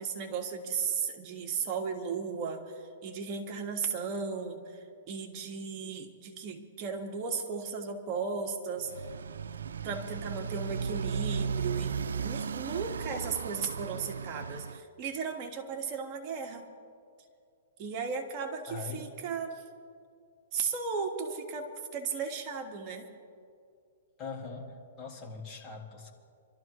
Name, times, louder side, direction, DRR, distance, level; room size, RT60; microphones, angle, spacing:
voice 1, 0.0-4.8 5.1-8.9 9.8-16.7 17.8-19.6 20.5-23.0, right 5 dB, 35° right, 2 dB, 1.7 m, -35 dB
Motorcycle, 8.8-14.8, right 6 dB, 90° right, 0.4 m, -35 dB
voice 2, 18.7-19.2 24.2-26.1, left 4 dB, 30° left, 1 dB, 2.1 m, -42 dB
26.0 x 13.0 x 3.2 m, 2.3 s
hypercardioid pair, 145°, 0 cm